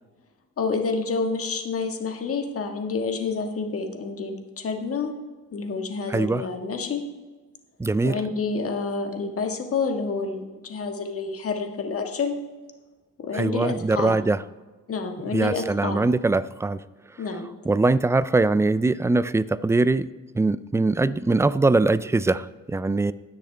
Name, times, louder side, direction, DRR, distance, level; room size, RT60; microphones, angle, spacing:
voice 1, 0.6-5.1 5.5-7.0 8.0-12.4 13.2-14.2 14.9-16.0 17.2-17.5, left 4 dB, 50° left, 4 dB, 1.7 m, -28 dB
voice 2, 6.1-6.5 7.8-8.2 13.3-14.4 15.3-16.8 17.6-20.1 20.3-23.1, right 3 dB, 10° right, 16 dB, 0.3 m, -22 dB
18.5 x 6.5 x 3.4 m, 1.3 s
cardioid pair, 90°, 30 cm